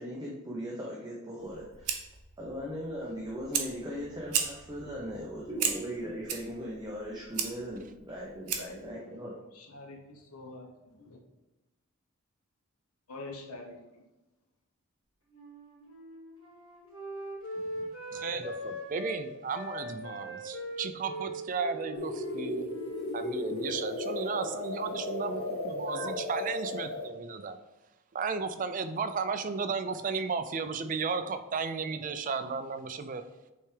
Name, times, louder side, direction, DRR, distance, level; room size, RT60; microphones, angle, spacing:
voice 1, 0.0-1.9 2.4-9.3, equal, 15° right, -4 dB, 0.7 m, -39 dB
Fire, 1.4-8.9, right 7 dB, 90° right, 0.8 m, -36 dB
voice 2, 8.6-11.2 13.1-13.8 18.3-18.4, left 2 dB, 85° left, 2 dB, 0.9 m, -46 dB
Wind instrument woodwind instrument, 15.3-19.2 19.5-23.1 23.3-23.9, equal, 65° left, 1.5 m, -41 dB
voice 3, 17.6-22.7 23.1-27.6 28.1-33.2, right 5 dB, 35° right, 9 dB, 0.4 m, -34 dB
sound 1, 21.9-27.1, left 2 dB, 45° left, 0.6 m, -35 dB
8.4 x 3.4 x 3.3 m, 1.1 s
head